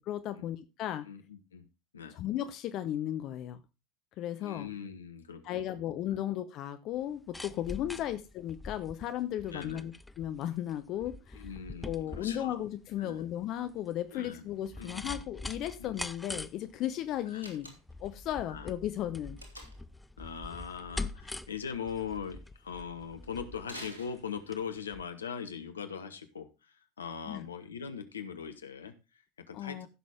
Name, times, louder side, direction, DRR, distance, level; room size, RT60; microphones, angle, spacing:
voice 1, 0.1-1.0 2.1-3.6 4.2-4.7 5.4-9.9 10.2-11.5 11.8-17.7 18.0-19.4 27.3-27.4 29.5-29.9, left 12 dB, 45° left, 10 dB, 0.8 m, -35 dB
voice 2, 1.0-1.6 1.9-2.2 4.4-5.8 6.1-6.3 7.9-8.1 9.5-9.9 11.3-12.6 13.0-13.2 14.1-14.4 14.8-15.3 15.8-16.0 17.3-17.4 18.5-18.7 20.2-29.9, left 7 dB, 75° left, 9 dB, 1.2 m, -41 dB
sound 1, 7.0-24.6 24.9-25.0, left 2 dB, 5° left, 0.6 m, -44 dB
Slam, 17.4-18.1 19.4-20.0 23.6-24.7, equal, 80° right, 2.5 m, -48 dB
15.5 x 6.3 x 3.6 m, 0.26 s
figure-of-eight pair, 75°, 0 cm